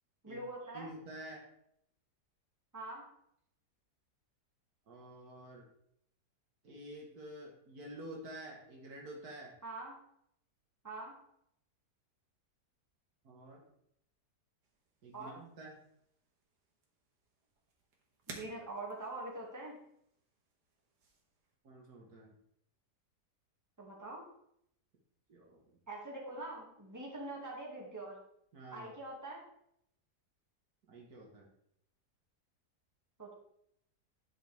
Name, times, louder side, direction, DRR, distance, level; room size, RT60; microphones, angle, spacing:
voice 1, 0.2-0.9 2.7-3.0 9.6-9.9 10.8-11.1 15.1-15.4 18.3-19.8 23.8-24.2 25.9-28.2 28.7-29.4 33.2-33.3, right 2 dB, 10° right, -3 dB, 2.1 m, -44 dB
voice 2, 0.7-1.4 4.9-5.7 6.6-9.6 13.2-13.7 15.0-15.8 21.6-22.3 25.3-25.7 28.5-28.9 30.9-31.5, right 1 dB, 65° right, 0 dB, 1.9 m, -49 dB
sound 1, 14.6-21.6, right 3 dB, 80° right, 1.9 m, -57 dB
11.0 x 6.3 x 3.5 m, 0.73 s
omnidirectional pair, 1.7 m